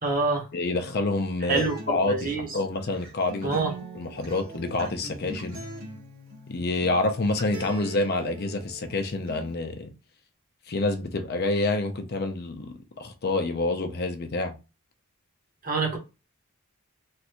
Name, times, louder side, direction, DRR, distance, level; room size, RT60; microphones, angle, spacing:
voice 1, 0.0-0.4 1.5-2.5 3.4-3.7 15.6-16.0, right 3 dB, 40° right, 0.9 m, -26 dB
voice 2, 0.5-3.6 3.9-5.6 6.5-9.9 10.7-14.5, left 2 dB, 45° left, 0.5 m, -28 dB
Acoustic guitar, 1.5-9.5, right 2 dB, 70° right, 1.4 m, -42 dB
3.2 x 2.6 x 2.9 m
head